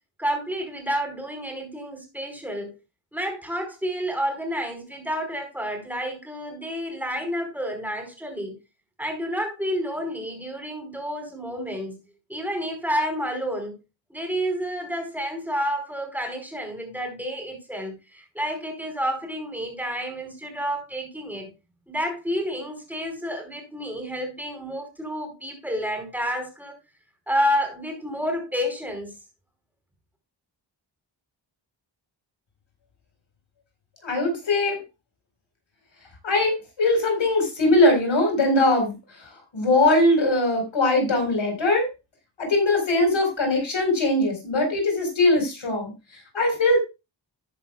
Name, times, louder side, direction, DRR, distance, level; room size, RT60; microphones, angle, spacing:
voice 1, 0.2-2.8 3.1-8.6 9.0-12.0 12.3-13.8 14.1-21.5 21.9-26.7 27.3-29.1, equal, 5° right, 4.9 m, -29 dB
voice 2, 34.0-34.8 36.2-38.9 39.2-41.9 42.4-45.9 46.3-46.8, left 2 dB, 80° left, 4.6 m, -21 dB
13.5 x 9.9 x 2.4 m
wide cardioid pair, 85°, 45 cm